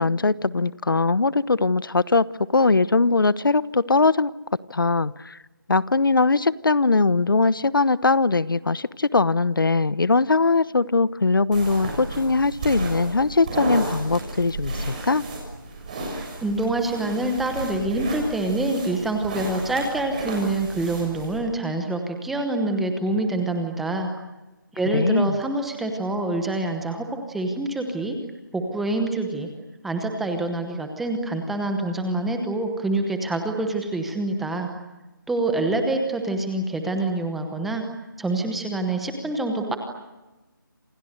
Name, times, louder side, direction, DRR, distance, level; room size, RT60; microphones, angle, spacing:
voice 1, 0.0-4.3 4.7-5.4 5.7-15.2 24.9-25.4, left 3 dB, 75° left, 18 dB, 1.0 m, -21 dB
sound 1, 11.5-21.4, right 2 dB, 20° right, 6.6 m, -33 dB
voice 2, 16.4-24.1 24.7-28.2 28.5-29.5 29.8-34.7 35.3-37.8 38.2-39.8, right 2 dB, ahead, 5 dB, 1.0 m, -26 dB
28.5 x 27.5 x 6.6 m, 1.1 s
figure-of-eight pair, 175°, 11 cm